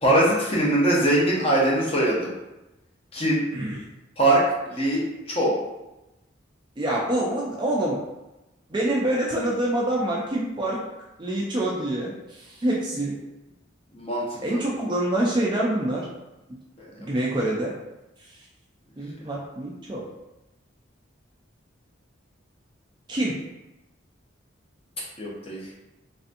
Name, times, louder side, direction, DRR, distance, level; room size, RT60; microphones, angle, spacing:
voice 1, 0.0-2.3 3.1-3.4 4.2-5.5 13.9-14.6 17.0-17.1 25.2-25.6, right 1 dB, 30° left, -5 dB, 0.7 m, -22 dB
voice 2, 3.5-3.9 6.8-8.0 8.7-10.8 11.2-13.2 14.4-16.1 17.0-17.7 19.0-20.0 23.1-23.4, right 1 dB, 20° right, -3 dB, 0.3 m, -26 dB
3.3 x 2.6 x 2.5 m, 0.98 s
head